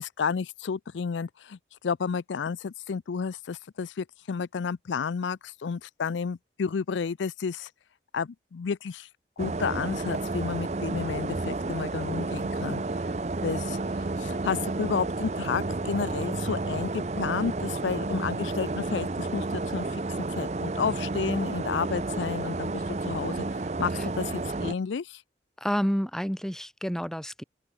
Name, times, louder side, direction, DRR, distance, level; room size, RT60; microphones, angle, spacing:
voice 1, 0.0-1.6 1.8-7.7 8.1-9.1 9.4-12.8 13.4-20.0 20.3-25.2, left 6 dB, 80° left, 0.4 m, -31 dB
sound 1, 9.4-24.7, right 2 dB, 35° right, 0.6 m, -31 dB
voice 2, 25.6-27.4, equal, 5° left, 1.9 m, -29 dB
open air
head